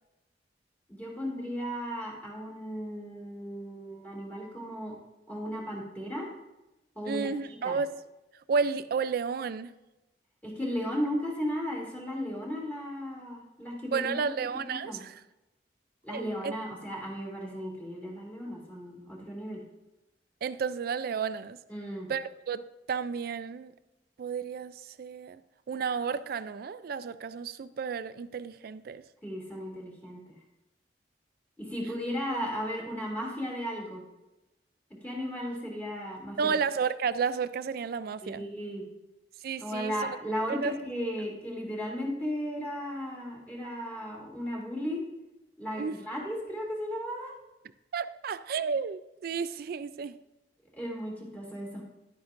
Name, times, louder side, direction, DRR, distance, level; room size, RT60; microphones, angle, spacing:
voice 1, 0.9-5.0 5.3-6.3 6.9-7.8 10.4-14.2 14.7-15.0 16.0-19.6 21.7-22.1 29.2-30.2 31.6-34.0 35.0-36.5 38.2-38.8 39.6-45.0 45.6-47.3 50.8-51.8, equal, 10° left, 2.7 m, -35 dB
voice 2, 7.1-7.9 8.5-9.7 13.9-15.1 16.1-16.5 20.4-21.6 22.1-23.7 24.2-25.4 25.7-29.0 36.4-38.4 39.4-39.9 40.6-40.7 45.8-46.0 47.9-50.1, right 5 dB, 60° right, 0.4 m, -32 dB
11.5 x 9.5 x 2.6 m
head